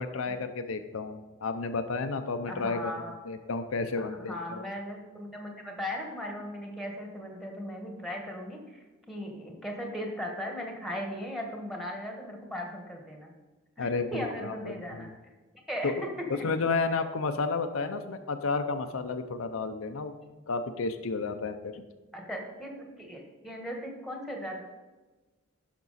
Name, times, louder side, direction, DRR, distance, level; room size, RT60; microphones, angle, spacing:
voice 1, 0.0-2.9 3.2-4.6 13.8-15.0 15.8-15.9 16.4-20.1 20.5-21.8, left 4 dB, 70° left, 7 dB, 0.6 m, -32 dB
voice 2, 2.5-3.1 4.1-13.3 13.8-15.1 15.7-15.9 16.2-16.5 22.1-24.6, equal, ahead, 1 dB, 1.4 m, -38 dB
10.5 x 6.0 x 4.1 m, 1.2 s
head